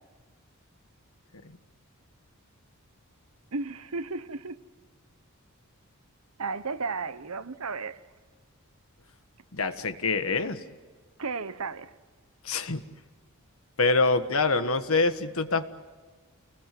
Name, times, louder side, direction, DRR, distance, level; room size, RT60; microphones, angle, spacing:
voice 1, 3.5-4.6 6.4-8.0 11.2-11.9, right 4 dB, 80° right, 13 dB, 1.1 m, -34 dB
voice 2, 9.5-10.6 12.4-12.8 13.8-15.7, left 3 dB, 70° left, 9 dB, 1.6 m, -25 dB
28.5 x 20.5 x 7.8 m, 1.4 s
head